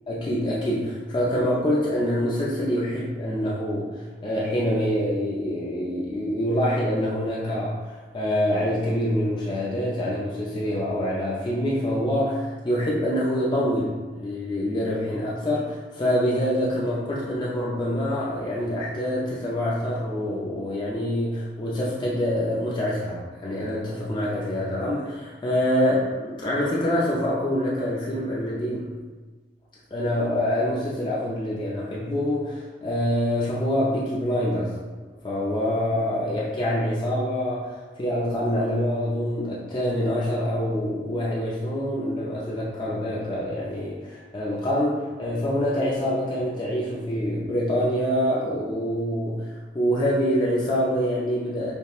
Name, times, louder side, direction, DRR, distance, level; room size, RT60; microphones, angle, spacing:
voice 1, 0.1-28.9 29.9-34.8 35.2-51.7, equal, 25° left, -6 dB, 0.4 m, -26 dB
5.1 x 2.0 x 2.4 m, 1.3 s
head